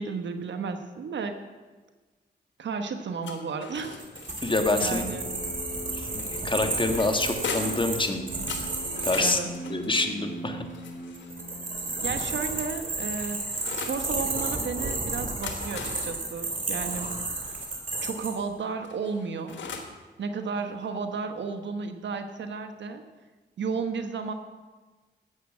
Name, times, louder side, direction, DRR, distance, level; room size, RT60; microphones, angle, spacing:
voice 1, 0.0-1.4 2.6-4.0 4.8-5.3 9.2-9.5 12.0-13.6 13.8-17.1 18.0-19.6 20.2-23.0 23.6-24.3, right 5 dB, 80° right, 7 dB, 1.1 m, -33 dB
sound 1, 3.2-4.8 6.1-7.9 8.5-11.4 12.2-14.0 15.2-17.7 18.8-20.0, left 5 dB, 85° left, 1.5 m, -40 dB
sound 2, 4.0-9.3 11.1-18.3, right 2 dB, 45° right, 3.1 m, -32 dB
voice 2, 4.4-5.0 5.9-8.2 9.0-9.4 9.7-10.6, left 2 dB, 25° left, 5 dB, 1.6 m, -26 dB
sound 3, 4.9-12.0, right 1 dB, 55° left, 3.4 m, -41 dB
11.5 x 8.2 x 7.5 m, 1.3 s
cardioid pair, 60°, 19 cm